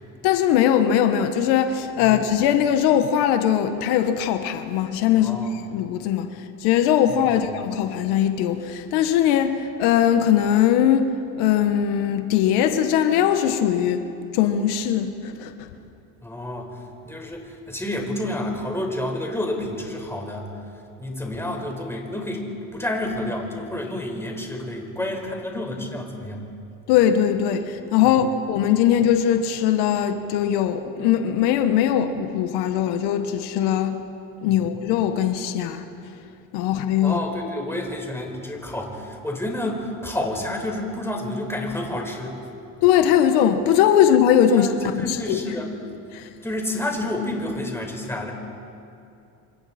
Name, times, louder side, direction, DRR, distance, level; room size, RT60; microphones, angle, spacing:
voice 1, 0.2-14.0 14.3-15.7 26.9-34.0 34.4-35.8 36.5-37.2 42.8-44.7 45.0-45.4 46.1-46.3, left 9 dB, 85° left, 1.4 m, -20 dB
voice 2, 2.0-2.3 5.2-5.6 7.3-7.5 16.2-16.7 17.0-20.5 21.0-26.4 28.0-28.3 34.5-34.7 37.0-42.4 44.5-45.7 46.4-48.3, left 1 dB, 5° left, 4.8 m, -29 dB
28.0 x 25.5 x 4.3 m
supercardioid pair, 95°, 38 cm